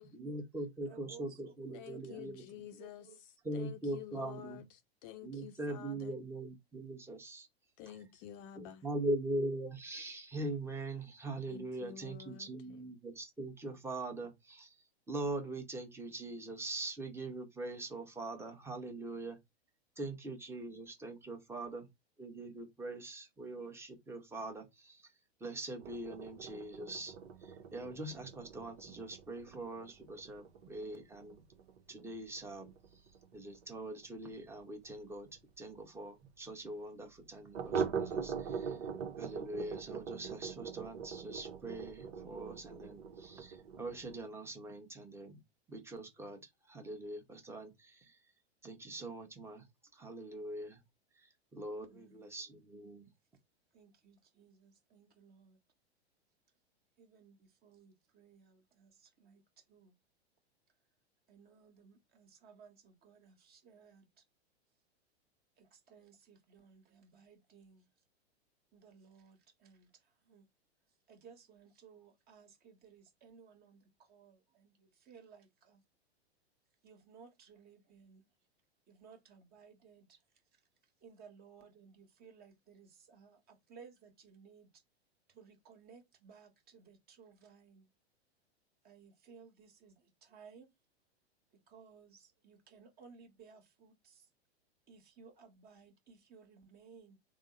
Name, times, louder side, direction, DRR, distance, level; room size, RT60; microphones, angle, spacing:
voice 1, 0.1-2.4 3.4-4.6 5.2-7.5 8.6-14.7 15.1-19.4 20.0-21.9 22.2-25.1 25.4-27.1 27.4-31.4 31.9-32.7 33.3-35.3 35.6-38.8 39.2-45.4 45.7-46.4 46.7-48.2 48.6-49.6 49.9-50.8 51.2-53.1, right 2 dB, 10° right, 0.9 m, -42 dB
voice 2, 0.8-2.3 2.8-3.5 51.8-52.3 53.7-55.6 57.0-59.9 61.3-64.2 65.6-67.9 68.7-70.5 71.1-75.8 76.8-78.2 78.9-80.2 81.0-84.7 85.3-87.9 88.8-90.7 91.7-94.3 94.9-97.2, right 6 dB, 30° right, 1.3 m, -59 dB
voice 3, 1.7-6.2 7.8-8.9 11.5-12.9, left 10 dB, 40° left, 0.6 m, -50 dB
sound 1, 25.8-35.1 35.4-35.5 35.8-35.9 36.3-36.4 37.5-44.3, right 6 dB, 65° right, 0.8 m, -42 dB
3.7 x 2.0 x 3.7 m
hypercardioid pair, 105°, 33 cm